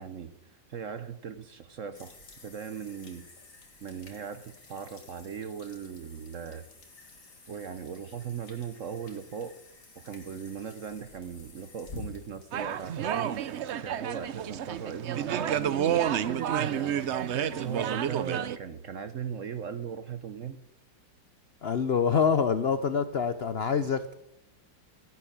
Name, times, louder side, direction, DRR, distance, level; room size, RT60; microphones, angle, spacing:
voice 1, 0.0-2.2 2.4-3.3 3.8-6.6 7.5-9.6 10.0-20.6, right 7 dB, 55° right, 12 dB, 1.0 m, -38 dB
sound 1, 1.9-18.0, left 2 dB, 45° left, 2.3 m, -51 dB
sound 2, 12.5-18.6, right 9 dB, 80° right, 0.6 m, -30 dB
voice 2, 21.6-24.1, left 6 dB, 65° left, 12 dB, 0.6 m, -26 dB
14.0 x 11.0 x 8.6 m, 0.84 s
omnidirectional pair, 2.0 m